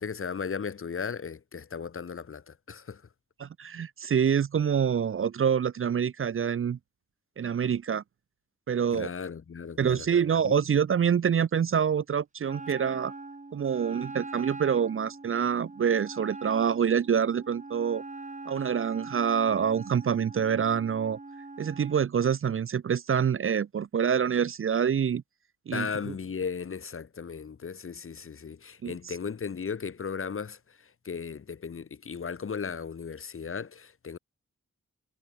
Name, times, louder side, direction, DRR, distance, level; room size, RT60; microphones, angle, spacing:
voice 1, 0.0-3.0 8.9-10.1 10.4-10.6 25.7-30.6 31.0-34.2, left 6 dB, 50° left, 0.8 m, -36 dB
voice 2, 3.4-6.8 7.4-8.0 8.7-9.1 9.8-13.1 13.5-18.0 18.5-21.2 21.6-25.2 25.7-26.1 28.8-29.1, right 7 dB, 45° right, 0.4 m, -26 dB
Wind instrument woodwind instrument, 12.5-22.1, right 3 dB, 25° right, 1.5 m, -42 dB
wide cardioid pair, 105°, 29 cm